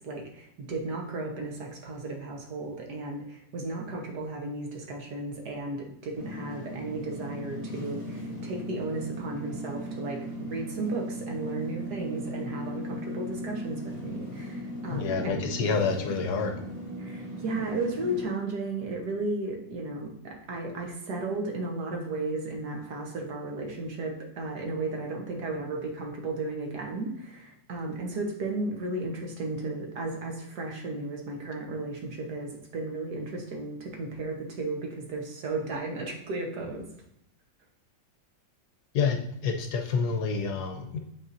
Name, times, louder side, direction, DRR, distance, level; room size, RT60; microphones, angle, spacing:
voice 1, 0.0-15.5 17.0-36.8, right 2 dB, 65° right, 1 dB, 1.6 m, -34 dB
sound 1, 6.1-18.2, equal, 10° right, 2.0 m, -38 dB
voice 2, 14.9-16.6 38.9-41.0, left 5 dB, 70° left, 5 dB, 1.1 m, -28 dB
8.7 x 4.2 x 2.6 m, 0.77 s
omnidirectional pair, 2.0 m